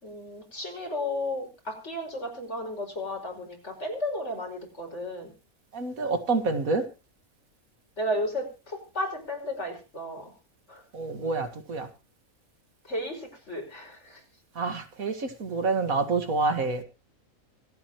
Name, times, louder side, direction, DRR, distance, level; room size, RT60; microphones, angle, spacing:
voice 1, 0.0-5.3 8.0-10.3 10.7-10.8 12.9-14.2, left 1 dB, 55° left, 3 dB, 5.7 m, -33 dB
voice 2, 5.7-6.8 10.9-11.9 14.6-16.8, right 3 dB, 75° right, 8 dB, 2.3 m, -27 dB
25.5 x 9.1 x 3.0 m, 0.30 s
omnidirectional pair, 1.5 m